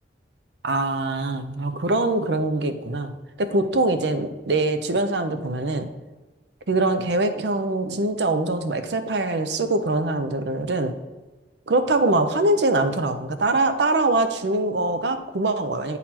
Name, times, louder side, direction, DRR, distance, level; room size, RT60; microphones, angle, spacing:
voice 1, 0.6-5.9 6.7-10.9 11.7-16.0, right 2 dB, 75° right, 9 dB, 0.6 m, -23 dB
8.9 x 4.1 x 4.3 m, 1.2 s
head